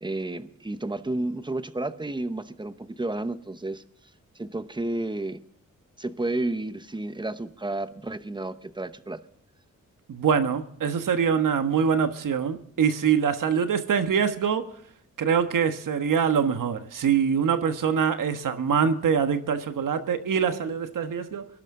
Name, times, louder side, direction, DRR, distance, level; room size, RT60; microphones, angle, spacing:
voice 1, 0.0-3.8 4.3-5.4 6.0-9.2, right 2 dB, 15° right, 0.9 m, -31 dB
voice 2, 10.1-14.7 15.2-21.5, right 7 dB, 80° right, 1.3 m, -24 dB
23.0 x 11.5 x 3.7 m
wide cardioid pair, 105°, 31 cm